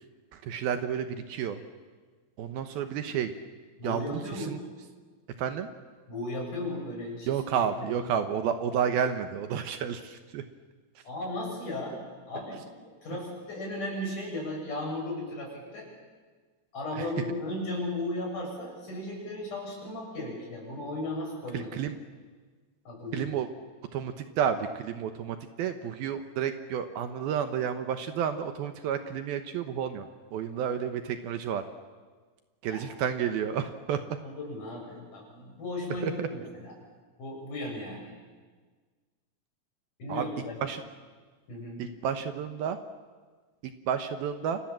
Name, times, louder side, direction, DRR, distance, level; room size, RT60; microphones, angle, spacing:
voice 1, 0.3-1.6 2.4-3.3 3.8-4.6 5.4-5.7 7.3-10.4 17.0-17.1 21.5-22.0 23.1-23.5 23.9-31.6 32.6-34.2 36.0-36.3 40.1-40.2 40.6-40.8 41.8-42.8 43.6-44.6, right 8 dB, 70° right, 9 dB, 2.8 m, -31 dB
voice 2, 3.8-4.6 6.1-7.3 7.6-8.0 11.1-12.0 12.3-15.9 16.7-21.8 22.9-23.3 32.7-32.9 34.2-36.7 37.2-38.0 40.0-40.6 41.5-41.8, left 1 dB, 50° left, -1 dB, 8.9 m, -36 dB
30.0 x 26.0 x 7.6 m, 1.4 s
omnidirectional pair, 4.7 m